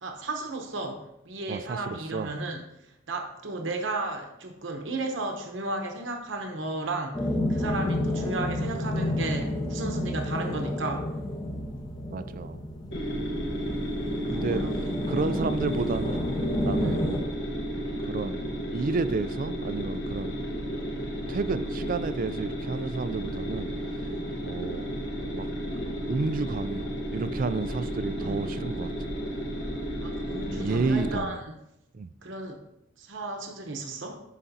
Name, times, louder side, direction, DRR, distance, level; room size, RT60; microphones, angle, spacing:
voice 1, 0.0-7.2 7.5-11.1 13.9-15.3 16.7-17.0 24.0-24.4 28.2-28.7 30.0-31.4 32.2-32.6 33.0-34.2, right 2 dB, 70° right, 3 dB, 1.0 m, -34 dB
voice 2, 1.5-2.3 12.1-12.6 14.3-14.6 15.1-16.3 16.6-17.1 18.0-18.5 18.7-20.4 21.3-24.1 24.4-25.0 25.3-25.5 25.8-28.9 30.5-31.4 31.9-32.1, right 4 dB, 45° right, 13 dB, 0.4 m, -31 dB
sound 1, 7.1-17.2, left 1 dB, 20° left, 0.8 m, -30 dB
sound 2, 12.9-31.2, equal, 60° left, 1.3 m, -33 dB
11.5 x 5.0 x 2.7 m, 0.84 s
head